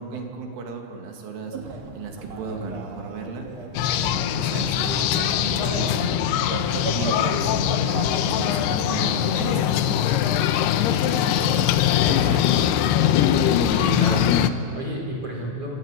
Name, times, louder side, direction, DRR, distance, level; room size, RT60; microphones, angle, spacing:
voice 1, 0.0-1.6 1.9-3.5 3.9-6.2 6.6-10.6 10.9-11.7 12.1-12.6, right 4 dB, 80° right, 2 dB, 5.0 m, -34 dB
sound 1, 1.5-13.9, right 3 dB, 50° right, 2.2 m, -37 dB
sound 2, 3.7-14.5, left 10 dB, 80° left, 2.4 m, -22 dB
voice 2, 13.8-15.7, right 1 dB, 30° right, -2 dB, 4.5 m, -31 dB
26.0 x 18.5 x 8.2 m, 2.8 s
omnidirectional pair, 5.6 m